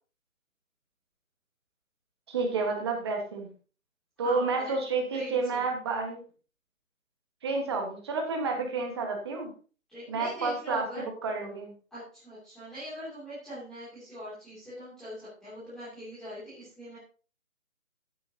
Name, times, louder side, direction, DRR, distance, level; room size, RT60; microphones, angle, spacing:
voice 1, 2.3-3.5 4.2-6.2 7.4-9.5 10.1-10.8 11.2-11.7, right 4 dB, 20° right, 2 dB, 1.5 m, -30 dB
voice 2, 4.2-4.8 5.1-5.6 9.9-11.0 11.9-17.0, equal, ahead, -14 dB, 2.8 m, -41 dB
14.0 x 9.2 x 2.9 m, 0.37 s
figure-of-eight pair, 165°, 40 cm